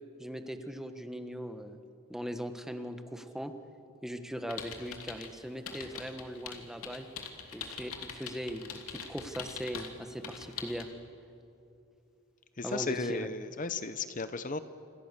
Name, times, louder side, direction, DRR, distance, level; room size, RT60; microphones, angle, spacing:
voice 1, 0.2-1.8 2.1-3.5 4.0-7.1 7.5-10.9 12.6-13.3, equal, ahead, 7 dB, 1.4 m, -39 dB
sound 1, 4.5-5.3 5.7-9.9 10.2-10.8, left 6 dB, 80° left, 2.9 m, -42 dB
voice 2, 12.6-14.6, left 4 dB, 35° left, 12 dB, 0.8 m, -35 dB
28.0 x 26.5 x 6.9 m, 2.8 s
head